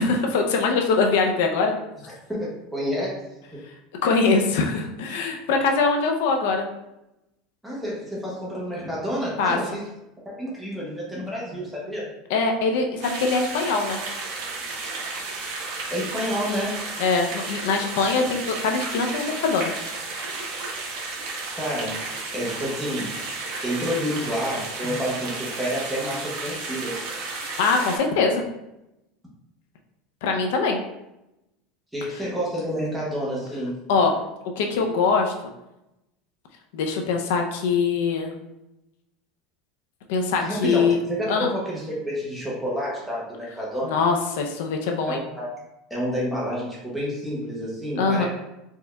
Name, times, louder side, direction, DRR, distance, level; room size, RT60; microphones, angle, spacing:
voice 1, 0.0-1.7 4.0-6.7 9.4-9.6 12.3-14.0 17.0-19.7 27.6-28.4 30.2-30.8 33.9-34.2 34.6-35.3 36.7-38.3 40.1-41.0 41.3-41.5 43.8-45.2 48.0-48.2, left 4 dB, 70° left, 3 dB, 0.5 m, -22 dB
voice 2, 2.3-3.3 7.6-9.8 10.2-12.1 15.9-16.8 21.5-22.0 22.3-27.1 31.9-33.8 40.4-44.0 45.1-45.5 45.9-48.2, equal, ahead, -6 dB, 0.9 m, -29 dB
sound 1, 13.0-28.0, right 3 dB, 60° right, 0.9 m, -33 dB
4.3 x 3.4 x 2.3 m, 0.91 s
supercardioid pair, 175°, 0 cm